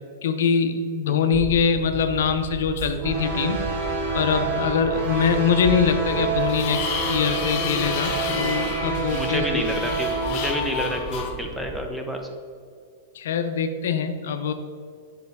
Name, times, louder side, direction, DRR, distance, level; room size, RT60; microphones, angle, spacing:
voice 1, 0.2-3.7 4.1-6.8 7.1-9.6 13.1-14.5, left 6 dB, 75° left, 8 dB, 0.6 m, -23 dB
sound 1, 1.3-11.9, right 5 dB, 20° right, 0.4 m, -36 dB
sound 2, 2.8-2.9 5.4-5.5 6.0-11.3, left 6 dB, 45° left, 1.0 m, -31 dB
sound 3, 3.0-10.4, right 4 dB, 55° right, 1.5 m, -28 dB
voice 2, 9.1-12.2, equal, ahead, 2 dB, 0.8 m, -29 dB
7.8 x 5.4 x 3.5 m, 2.2 s
hypercardioid pair, 135°, 0 cm